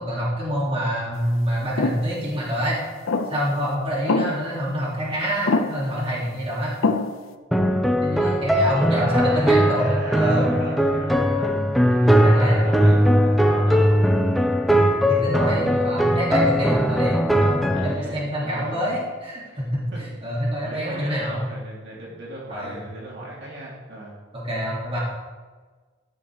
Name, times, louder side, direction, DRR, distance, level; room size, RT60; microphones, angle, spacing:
voice 1, 0.0-2.8 3.3-6.8 8.0-10.5 11.9-12.6 15.1-19.9 20.2-21.5 22.5-22.8 24.3-25.0, equal, 30° right, -5 dB, 3.1 m, -26 dB
sound 1, 1.8-2.1 3.1-3.5 4.1-4.6 5.5-6.0 6.8-7.3, left 3 dB, 80° left, 0.7 m, -24 dB
sound 2, 7.5-17.9, equal, ahead, 0.7 m, -19 dB
voice 2, 8.9-14.0 17.7-18.9 19.9-20.0 20.6-24.2, right 1 dB, 60° right, -5 dB, 2.7 m, -37 dB
13.0 x 6.3 x 4.9 m, 1.4 s
head